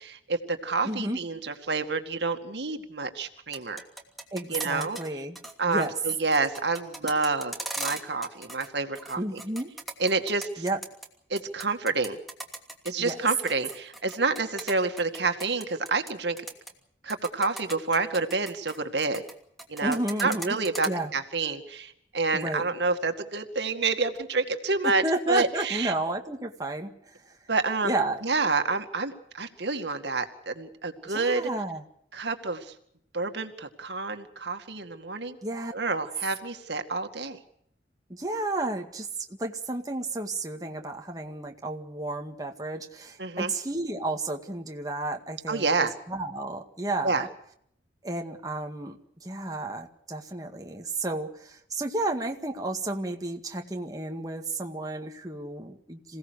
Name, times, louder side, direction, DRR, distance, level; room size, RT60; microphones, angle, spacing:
voice 1, 0.3-3.8 4.5-5.0 5.6-9.4 10.0-10.6 11.3-12.2 12.8-16.4 17.0-19.2 19.7-25.0 25.3-25.9 27.5-28.0 28.2-31.5 32.1-32.7 33.1-35.4 35.7-37.4 43.2-43.5 45.5-45.9 47.0-47.3, right 3 dB, 70° right, 7 dB, 2.2 m, -28 dB
voice 2, 0.8-1.2 4.3-5.9 9.2-9.7 10.6-10.8 13.0-13.3 19.8-20.6 20.9-21.1 22.3-22.7 24.8-27.2 27.8-28.2 31.1-31.8 35.4-35.7 38.1-47.3 48.0-49.0 49.2-56.2, right 2 dB, 20° right, 2 dB, 2.0 m, -32 dB
sound 1, 3.4-5.1 5.3-5.5 5.8-8.7 8.9-11.1 11.4-16.1 16.4-16.7 17.1-19.3 19.6-20.9, right 1 dB, ahead, 2.8 m, -38 dB
27.5 x 17.5 x 6.5 m, 0.70 s
head